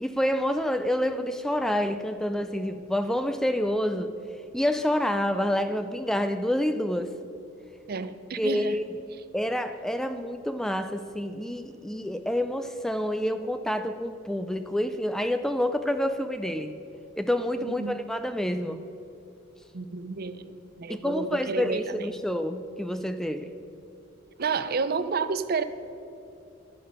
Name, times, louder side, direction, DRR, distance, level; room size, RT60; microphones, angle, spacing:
voice 1, 0.0-4.1 4.5-7.1 8.4-8.8 9.3-16.8 17.2-18.8 20.9-23.5, left 1 dB, ahead, 9 dB, 0.3 m, -28 dB
voice 2, 7.9-8.8 17.7-18.0 19.7-22.0 24.4-25.6, right 4 dB, 50° right, 12 dB, 0.5 m, -30 dB
12.0 x 10.0 x 5.5 m, 2.9 s
head